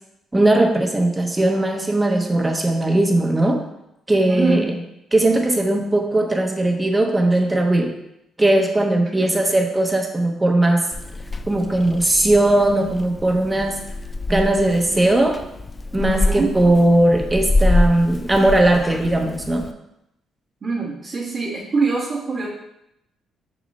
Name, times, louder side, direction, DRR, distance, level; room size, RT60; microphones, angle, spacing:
voice 1, 0.3-3.6 4.1-4.7 5.1-7.9 8.4-10.9 11.5-13.8 14.3-15.4 15.9-19.7, right 1 dB, 15° right, 3 dB, 1.1 m, -18 dB
voice 2, 4.3-4.8 9.2-9.4 16.0-16.5 20.6-22.5, right 3 dB, 45° right, -8 dB, 1.5 m, -24 dB
Purr / Meow, 10.9-19.7, left 2 dB, 25° left, 0.4 m, -26 dB
6.3 x 3.8 x 5.4 m, 0.85 s
cardioid pair, 90°, 0 cm